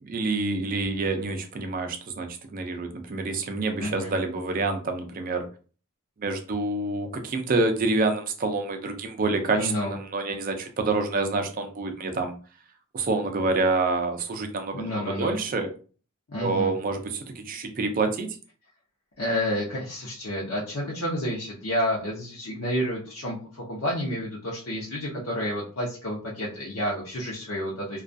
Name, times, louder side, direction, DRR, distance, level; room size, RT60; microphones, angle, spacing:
voice 1, 0.0-5.4 6.2-12.3 12.9-15.7 16.4-18.3, right 3 dB, 40° right, 6 dB, 0.4 m, -27 dB
voice 2, 3.8-4.1 9.5-9.9 14.7-15.3 16.3-16.7 19.2-28.0, equal, 70° left, -5 dB, 0.6 m, -30 dB
2.3 x 2.2 x 2.5 m, 0.39 s
head